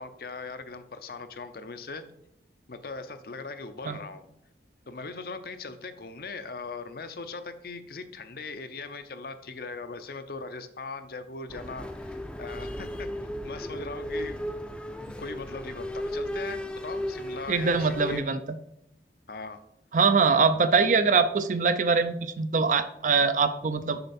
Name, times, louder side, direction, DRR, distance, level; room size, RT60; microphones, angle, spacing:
voice 1, 0.0-2.0 2.7-4.2 4.9-14.5 15.0-18.4 19.3-19.6, left 3 dB, 55° left, 10 dB, 0.6 m, -40 dB
sound 1, 11.5-18.2, left 1 dB, 5° left, 0.5 m, -35 dB
voice 2, 17.5-18.4 19.9-24.0, right 5 dB, 45° right, 11 dB, 0.5 m, -23 dB
6.7 x 5.7 x 4.2 m, 0.79 s
head